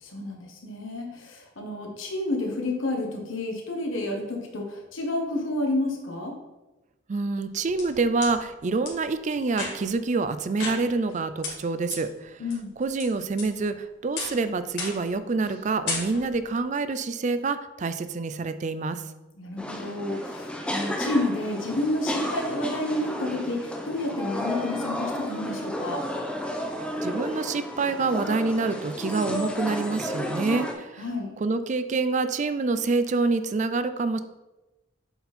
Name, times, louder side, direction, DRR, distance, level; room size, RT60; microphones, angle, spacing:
voice 1, 0.0-6.3 12.4-12.7 19.4-26.0 31.0-31.3, left 2 dB, 90° left, 1 dB, 1.3 m, -30 dB
voice 2, 7.1-12.4 12.8-19.0 27.0-31.0 31.4-34.2, right 3 dB, 40° right, 11 dB, 0.4 m, -27 dB
sound 1, 7.4-8.3 8.8-8.9 9.5-10.0 10.6-11.1 11.4-11.5 11.9-12.0 12.5-13.0 13.4-13.8 14.2-14.4 14.8-15.1 15.4-15.6 15.9-16.4, left 3 dB, 60° left, 2.5 m, -34 dB
sound 2, 19.6-30.7, equal, 5° left, 0.6 m, -32 dB
7.8 x 4.3 x 4.2 m, 1.1 s
head